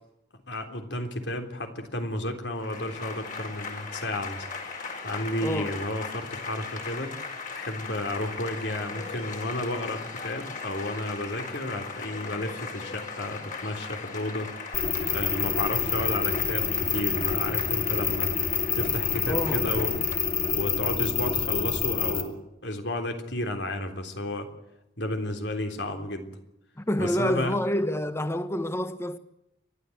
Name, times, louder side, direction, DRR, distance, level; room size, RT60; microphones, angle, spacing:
voice 1, 0.5-4.5 5.0-7.2 7.5-14.9 15.1-18.3 18.7-20.0 20.5-24.5 25.0-26.4 27.0-27.6, left 1 dB, 75° left, 3.5 m, -32 dB
Applause / Crowd, 2.5-21.1, left 4 dB, 50° left, 4.7 m, -39 dB
voice 2, 5.4-5.8 19.3-19.7 26.8-29.2, equal, 15° left, 1.2 m, -28 dB
sound 1, 14.7-22.2, left 6 dB, 35° left, 2.6 m, -27 dB
30.0 x 13.0 x 8.0 m
head